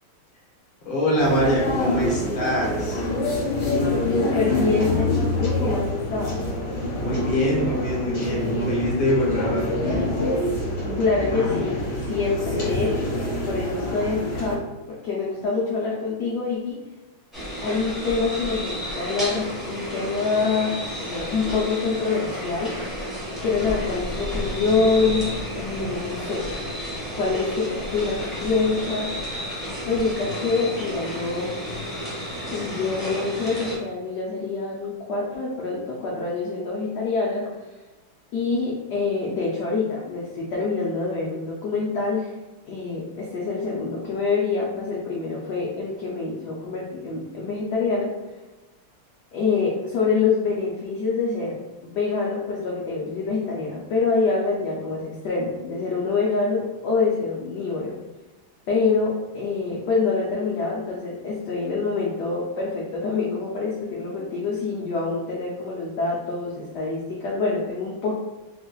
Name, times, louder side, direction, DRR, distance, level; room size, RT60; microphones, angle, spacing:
voice 1, 0.8-3.1 6.9-10.1, equal, 40° left, -6 dB, 0.8 m, -24 dB
sound 1, 1.2-14.6, left 1 dB, 60° left, 1.9 m, -26 dB
voice 2, 4.1-6.4 11.0-13.2 13.5-14.6 14.9-16.8 17.6-22.7 23.4-26.4 27.1-29.1 29.8-31.6 32.5-37.5 38.3-42.3 42.7-48.1 49.3-51.5 51.8-57.9 58.7-68.2, left 4 dB, 75° left, -4 dB, 0.9 m, -26 dB
sound 2, 17.3-33.8, equal, ahead, 0.7 m, -32 dB
3.9 x 2.5 x 2.3 m, 1.1 s
omnidirectional pair, 2.3 m